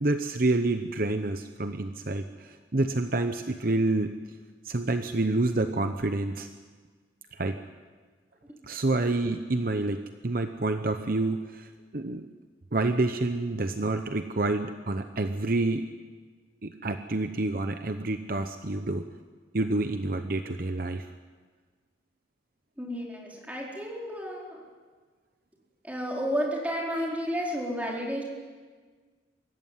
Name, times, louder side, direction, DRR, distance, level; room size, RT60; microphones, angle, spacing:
voice 1, 0.0-4.1 4.6-6.5 7.3-7.6 8.6-12.2 12.7-15.9 16.6-19.1 19.5-21.1, right 2 dB, 50° right, 7 dB, 0.9 m, -28 dB
voice 2, 22.8-24.6 25.8-28.2, equal, 10° right, -3 dB, 4.5 m, -31 dB
25.0 x 14.5 x 9.5 m, 1.5 s
head